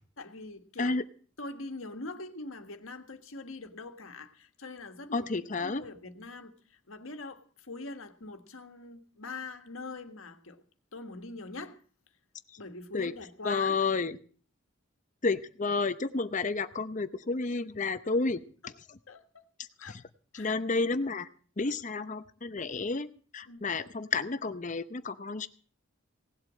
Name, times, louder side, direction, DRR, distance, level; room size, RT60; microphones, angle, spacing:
voice 1, 0.2-0.9 1.4-5.3 5.6-10.6 10.9-11.8 12.6-13.8 18.6-18.7 19.1-19.4 19.8-20.0 20.3-20.5 23.5-23.7, left 3 dB, 90° left, 1.7 m, -43 dB
voice 2, 5.1-5.8 12.9-13.1 13.4-14.2 15.2-18.4 20.3-21.3 21.6-25.5, left 3 dB, 40° left, 0.7 m, -31 dB
18.0 x 8.0 x 7.5 m
head